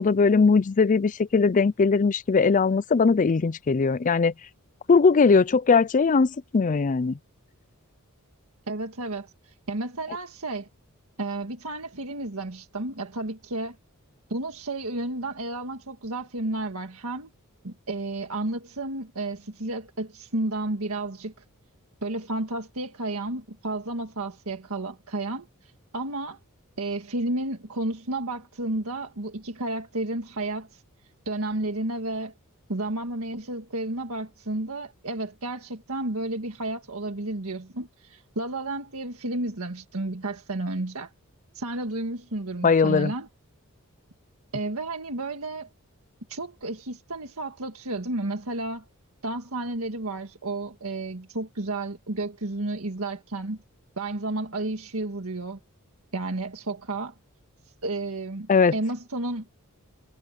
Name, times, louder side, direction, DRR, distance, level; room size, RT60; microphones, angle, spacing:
voice 1, 0.0-4.3 4.9-7.2 42.6-43.1 58.5-58.7, left 4 dB, 35° left, 0.4 m, -20 dB
voice 2, 8.7-10.7 11.2-13.8 14.3-17.3 17.6-21.3 22.0-25.5 25.9-26.4 26.8-30.8 31.3-32.3 32.7-41.1 41.5-43.3 44.5-45.7 46.3-48.9 49.2-53.6 54.0-55.6 56.1-57.1 57.8-59.5, right 2 dB, 70° right, 1.8 m, -32 dB
head